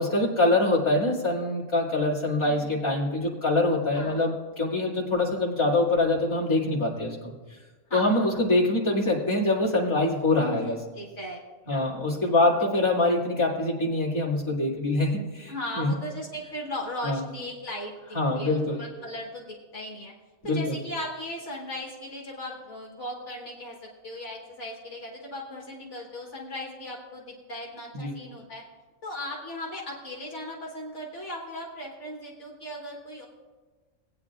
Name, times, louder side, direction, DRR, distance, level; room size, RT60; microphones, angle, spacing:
voice 1, 0.0-7.3 7.9-10.8 11.7-15.9 17.0-17.2 18.1-18.8 20.4-20.8 27.9-28.2, left 2 dB, 20° left, -6 dB, 2.3 m, -24 dB
voice 2, 2.4-2.9 3.9-4.3 7.9-8.3 10.5-11.4 11.6-12.3 15.5-17.9 18.3-20.1 20.4-23.8 24.0-28.6 29.0-33.3, left 1 dB, 60° left, -1 dB, 1.6 m, -37 dB
19.5 x 9.2 x 2.4 m, 1.3 s
omnidirectional pair, 1.4 m